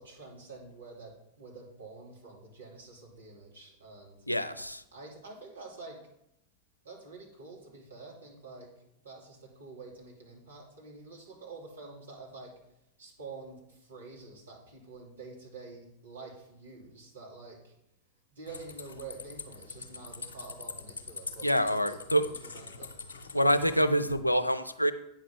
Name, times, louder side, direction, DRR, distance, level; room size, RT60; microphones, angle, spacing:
voice 1, 0.0-4.3 4.9-6.0 6.8-8.7 9.0-12.6 13.0-17.7 18.3-21.5 21.9-23.0, right 3 dB, 75° right, -3 dB, 2.6 m, -48 dB
voice 2, 4.3-4.8 21.4-22.2 23.3-24.9, equal, 90° left, 11 dB, 0.5 m, -26 dB
sound 1, 18.5-23.9, left 4 dB, 70° left, 0.9 m, -44 dB
8.9 x 5.9 x 5.3 m, 0.81 s
figure-of-eight pair, 90°, 0 cm